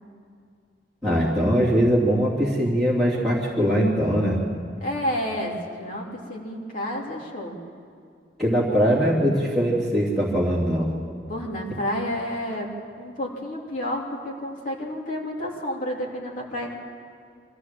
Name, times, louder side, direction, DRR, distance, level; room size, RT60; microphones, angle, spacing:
voice 1, 1.0-4.4 8.4-10.9, equal, ahead, -8 dB, 2.9 m, -21 dB
voice 2, 4.8-7.6 11.3-12.7 13.0-16.8, left 1 dB, 45° left, -2 dB, 3.1 m, -30 dB
24.0 x 15.0 x 7.6 m, 2.3 s
head